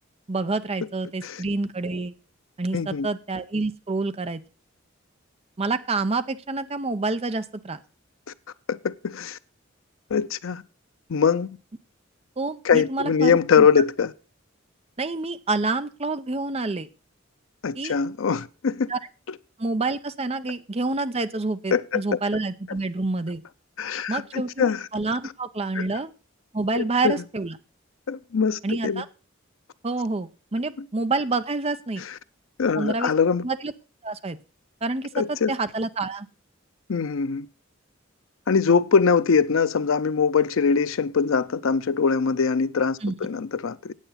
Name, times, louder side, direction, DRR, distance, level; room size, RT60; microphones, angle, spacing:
voice 1, 0.3-2.1 2.6-4.4 5.6-7.8 12.4-13.7 15.0-16.9 17.7-17.9 18.9-19.0 19.6-23.4 24.1-26.1 26.5-27.6 28.6-29.1 29.8-32.1 32.8-33.1 33.4-33.7 34.0-34.4 34.8-36.3 43.0-43.1, right 3 dB, 30° right, 0.7 m, -28 dB
voice 2, 2.7-3.1 8.7-9.4 10.1-10.6 11.1-11.5 12.6-14.1 17.6-18.9 21.7-22.0 23.8-24.9 25.8-25.9 26.7-27.1 28.1-29.0 32.6-33.5 35.1-35.5 36.9-37.5 38.5-43.9, left 6 dB, 90° left, 0.5 m, -22 dB
9.1 x 8.1 x 5.7 m
head